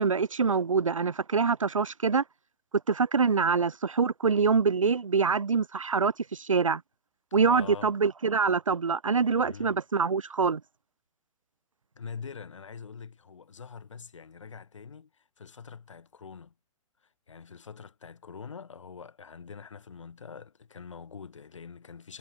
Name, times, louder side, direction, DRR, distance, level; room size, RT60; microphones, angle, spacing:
voice 1, 0.0-2.2 2.9-6.8 7.3-10.6, right 5 dB, 75° right, 0.9 m, -25 dB
voice 2, 7.3-7.9 9.4-9.8 11.9-16.5 17.0-22.2, left 6 dB, 65° left, 5.9 m, -44 dB
figure-of-eight pair, 115°, 17 cm